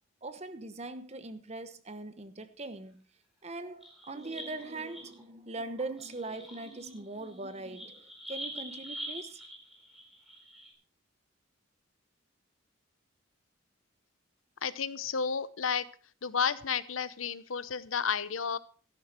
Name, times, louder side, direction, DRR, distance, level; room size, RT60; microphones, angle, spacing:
voice 1, 0.2-3.0 3.4-9.4, right 2 dB, 30° right, 1.0 m, -41 dB
sound 1, 3.7-5.2 5.7-10.7, equal, ahead, 4.4 m, -45 dB
voice 2, 14.6-15.9 16.2-18.6, left 6 dB, 85° left, 0.8 m, -32 dB
13.0 x 11.5 x 4.4 m
head